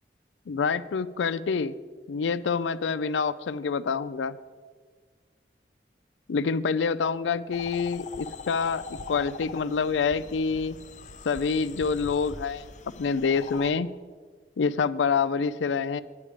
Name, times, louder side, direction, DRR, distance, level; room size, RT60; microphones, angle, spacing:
voice 1, 0.5-1.7 2.1-4.4 6.3-10.8 11.2-12.7 13.0-13.9 14.6-16.0, left 5 dB, 90° left, 14 dB, 0.4 m, -27 dB
sound 1, 7.5-13.7, left 4 dB, 40° left, 0.6 m, -42 dB
10.0 x 9.7 x 5.0 m, 1.5 s
head